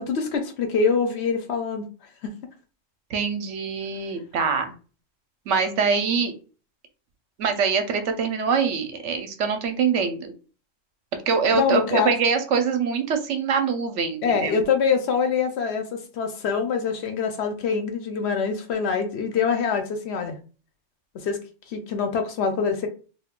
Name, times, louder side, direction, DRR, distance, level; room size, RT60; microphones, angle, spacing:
voice 1, 0.0-1.9 2.2-2.3 11.5-12.1 14.2-20.4 21.1-21.4 21.7-22.9, left 6 dB, 65° left, 5 dB, 0.8 m, -24 dB
voice 2, 3.1-4.7 5.5-6.3 7.4-10.3 11.3-14.7, right 5 dB, 75° right, 6 dB, 0.9 m, -24 dB
2.3 x 2.3 x 3.5 m, 0.37 s
omnidirectional pair, 1.3 m